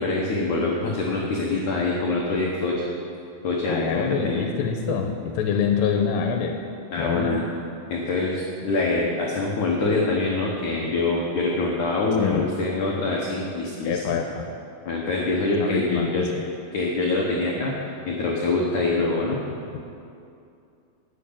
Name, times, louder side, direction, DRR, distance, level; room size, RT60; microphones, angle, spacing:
voice 1, 0.0-2.8 3.4-4.4 6.9-7.4 7.9-14.0 14.9-16.3 16.7-17.8 18.1-19.4, left 3 dB, 70° left, -3 dB, 1.9 m, -24 dB
voice 2, 3.7-6.6 7.0-7.3 12.2-12.4 13.8-14.4 15.6-16.4, left 7 dB, 90° left, 3 dB, 2.9 m, -25 dB
9.8 x 7.7 x 8.5 m, 2.5 s
omnidirectional pair, 5.0 m